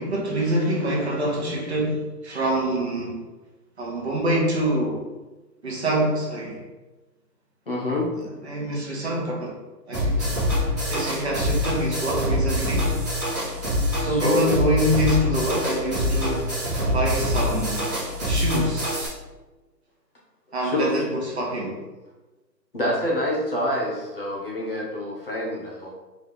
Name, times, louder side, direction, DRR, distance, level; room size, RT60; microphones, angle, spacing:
voice 1, 0.0-3.2 3.8-5.0 5.6-6.6 8.1-9.6 9.9-10.4 10.9-13.0 14.0-16.6 16.9-17.9 18.2-19.0 20.5-21.9, right 1 dB, 40° right, -3 dB, 0.9 m, -26 dB
voice 2, 7.7-8.1 14.0-14.5 20.6-20.9 22.7-25.9, left 1 dB, 35° left, -4 dB, 0.8 m, -26 dB
sound 1, 9.9-19.1, left 1 dB, 10° right, 0.9 m, -25 dB
3.6 x 3.0 x 3.7 m, 1.2 s
hypercardioid pair, 175°, 50 cm